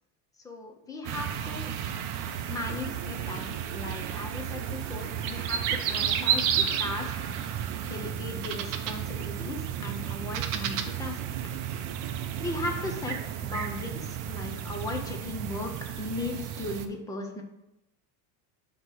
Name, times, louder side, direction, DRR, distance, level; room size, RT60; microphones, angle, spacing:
voice 1, 0.4-1.7 2.5-5.6 5.9-7.1 7.8-11.2 12.4-15.7 16.0-17.4, left 2 dB, 10° left, 2 dB, 0.3 m, -37 dB
sound 1, 1.0-16.9, right 9 dB, 45° right, 0.6 m, -32 dB
sound 2, 2.7-12.7, right 10 dB, 80° right, 0.7 m, -44 dB
7.8 x 3.0 x 6.1 m, 0.90 s
cardioid pair, 160°, 46 cm